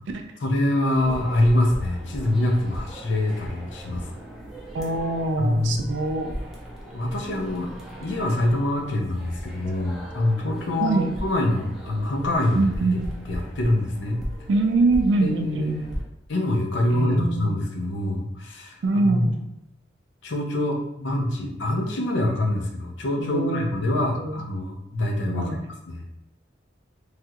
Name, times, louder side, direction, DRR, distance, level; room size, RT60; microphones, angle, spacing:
voice 1, 0.4-4.1 5.4-6.0 6.9-7.7 8.0-12.7 13.3-14.2 15.2-15.9 16.3-19.3 20.2-25.6 25.9-26.1, left 1 dB, 70° left, 2 dB, 0.5 m, -25 dB
sound 1, 0.9-16.0, equal, 5° right, 0.5 m, -38 dB
voice 2, 4.7-6.3 10.8-11.2 12.5-13.1 14.5-15.8 16.9-17.6 18.8-19.4 23.2-23.7 24.2-24.4 25.3-25.6, right 2 dB, 70° right, 3 dB, 0.3 m, -24 dB
3.2 x 2.8 x 2.3 m, 0.85 s
head